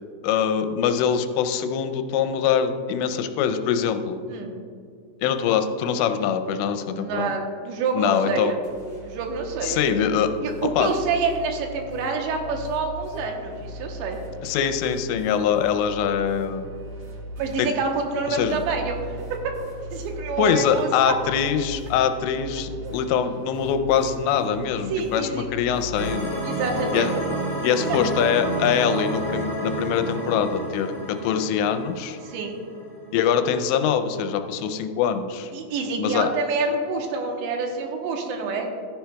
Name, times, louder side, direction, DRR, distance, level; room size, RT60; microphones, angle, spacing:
voice 1, 0.2-4.2 5.2-7.3 8.0-8.5 9.6-10.3 10.8-10.9 14.4-16.7 17.6-17.7 18.3-18.6 20.4-26.4 26.9-27.1 27.6-32.2 33.1-35.5 36.0-36.3, left 8 dB, 85° left, 8 dB, 2.8 m, -23 dB
voice 2, 7.0-8.6 9.0-9.8 10.4-14.2 17.4-19.2 19.9-21.2 22.8-23.0 24.9-25.5 26.4-27.1 32.2-32.6 35.5-38.7, right 4 dB, 80° right, 2 dB, 3.2 m, -27 dB
sound 1, 8.6-26.1, left 1 dB, 50° right, 1.9 m, -39 dB
sound 2, 25.9-33.0, right 1 dB, 10° left, 1.1 m, -30 dB
14.0 x 10.5 x 2.3 m, 2.4 s
omnidirectional pair, 5.1 m